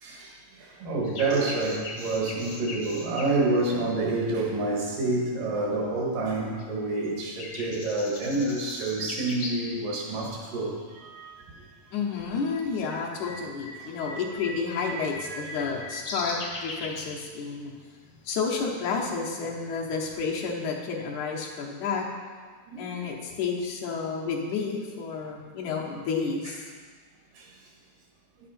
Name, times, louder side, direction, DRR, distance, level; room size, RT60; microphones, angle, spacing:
voice 1, 0.0-11.6 13.8-14.0 14.7-15.5 22.7-23.0 27.3-27.5, right 2 dB, 75° right, -1 dB, 3.0 m, -28 dB
sound 1, 1.0-5.0 5.5-6.3 6.6-9.8 10.1-10.2 10.9-11.2 11.5-20.5, left 2 dB, 90° left, 0.9 m, -40 dB
voice 2, 11.9-17.7 18.2-22.1 22.8-26.7, left 5 dB, 70° left, -1 dB, 2.4 m, -31 dB
10.0 x 8.5 x 4.3 m, 1.6 s
omnidirectional pair, 3.8 m